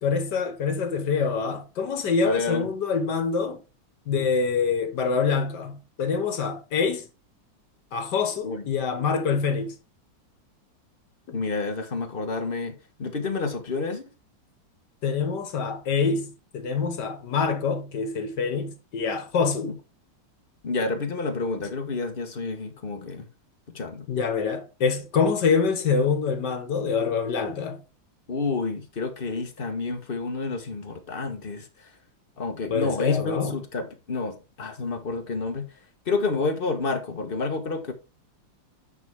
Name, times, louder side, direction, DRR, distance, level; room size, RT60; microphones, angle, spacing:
voice 1, 0.0-3.6 4.1-7.1 7.9-9.7 11.3-11.4 15.0-19.7 24.1-27.8 32.7-33.6, left 5 dB, 65° left, 1.9 m, -25 dB
voice 2, 2.2-2.7 8.4-8.6 11.3-14.0 19.6-19.8 20.6-23.3 23.7-24.1 28.3-31.9 32.4-35.7 36.0-37.9, left 3 dB, 30° left, 1.4 m, -29 dB
9.0 x 5.5 x 3.6 m
omnidirectional pair, 2.0 m